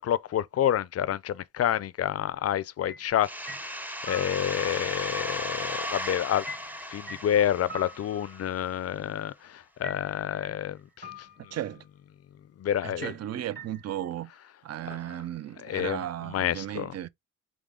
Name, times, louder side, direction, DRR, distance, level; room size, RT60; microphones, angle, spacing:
voice 1, 0.0-6.5 6.9-11.6 12.6-13.1 14.8-15.2 15.6-17.0, left 10 dB, 50° left, 0.4 m, -29 dB
sound 1, 2.9-3.1 3.5-4.9 6.5-8.8 9.8-10.7 11.0-11.8 13.0-14.1, equal, 35° right, 1.0 m, -45 dB
sound 2, 3.2-8.7, equal, 5° right, 0.5 m, -36 dB
voice 2, 11.5-11.8 12.8-14.3 14.6-17.1, right 12 dB, 55° right, 0.4 m, -35 dB
3.7 x 3.5 x 3.5 m
cardioid pair, 85°, 31 cm